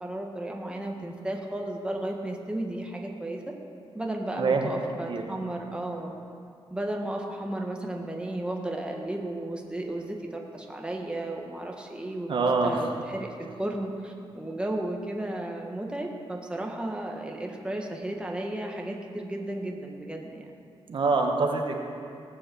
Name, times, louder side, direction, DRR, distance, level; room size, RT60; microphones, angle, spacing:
voice 1, 0.0-3.5 3.9-6.1 6.7-20.4, right 1 dB, 10° right, 1 dB, 1.5 m, -34 dB
voice 2, 4.4-4.7 5.1-5.2 12.3-12.9 20.9-21.8, right 3 dB, 60° right, 2 dB, 1.3 m, -25 dB
18.5 x 6.4 x 7.7 m, 2.5 s
wide cardioid pair, 105°, 10 cm